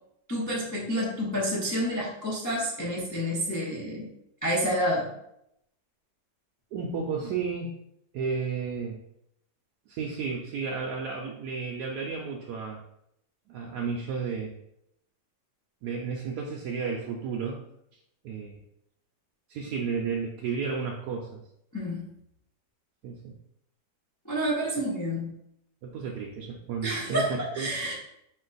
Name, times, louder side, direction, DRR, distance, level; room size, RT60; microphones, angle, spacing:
voice 1, 0.3-4.1 4.4-5.1 21.7-22.1 24.2-25.3 26.8-27.9, equal, 30° left, -6 dB, 0.3 m, -29 dB
voice 2, 6.7-7.7 8.1-9.0 9.9-12.8 13.5-14.6 15.8-17.6 18.2-18.6 19.5-21.4 23.0-23.3 25.8-27.7, right 5 dB, 75° right, -1 dB, 1.1 m, -32 dB
4.4 x 2.5 x 3.9 m, 0.79 s
omnidirectional pair, 1.8 m